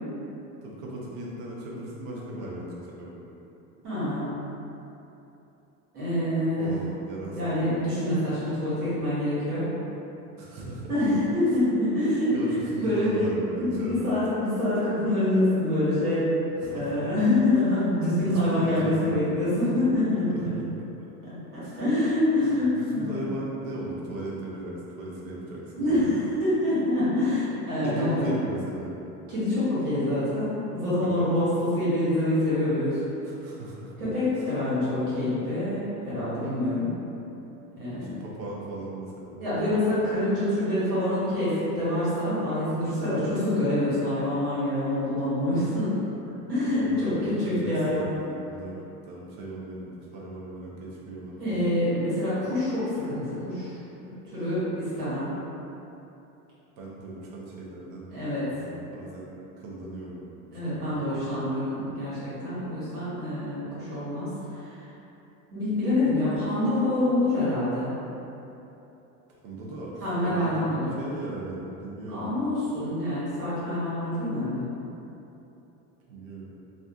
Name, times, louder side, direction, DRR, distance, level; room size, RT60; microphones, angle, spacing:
voice 1, 0.6-3.2 6.6-7.6 10.4-10.9 12.3-14.1 16.6-17.2 18.3-19.2 20.3-20.4 21.6-21.8 22.3-26.2 27.8-28.9 31.1-31.3 33.2-34.1 34.4-34.5 37.9-39.7 46.7-51.5 56.8-58.1 58.4-61.1 69.3-72.4 76.1-76.5, right 1 dB, 50° right, -4 dB, 0.7 m, -37 dB
voice 2, 3.8-4.3 5.9-6.7 7.3-9.7 10.9-12.3 12.8-13.1 13.6-16.3 16.7-20.5 21.2-23.2 25.8-28.3 29.3-30.5 30.7-33.0 34.0-36.9 37.7-38.1 39.4-45.9 46.5-48.1 51.4-53.8 54.0-55.3 58.1-58.5 60.5-64.8 65.5-67.9 70.0-70.9 72.1-74.6, left 1 dB, 90° right, -12 dB, 1.3 m, -26 dB
2.5 x 2.4 x 2.3 m, 2.9 s
hypercardioid pair, 80°, 45 cm